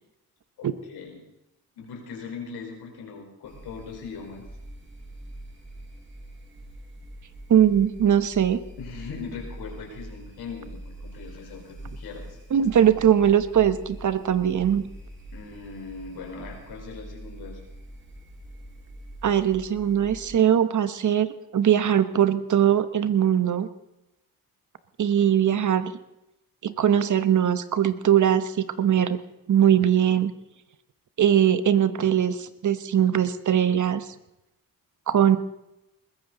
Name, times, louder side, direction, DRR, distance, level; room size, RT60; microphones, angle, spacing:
voice 1, 0.6-1.2 1.8-4.4 8.8-12.4 15.3-17.6, left 5 dB, 85° left, 2 dB, 4.2 m, -40 dB
sound 1, 3.4-20.3, right 1 dB, 30° right, 5.5 m, -43 dB
voice 2, 7.5-8.6 12.5-14.8 19.2-23.7 25.0-25.9 26.6-29.2 29.5-30.3 31.2-34.0 35.1-35.4, right 9 dB, 50° right, 12 dB, 1.1 m, -21 dB
21.0 x 15.0 x 3.9 m, 0.91 s
cardioid pair, 75°, 37 cm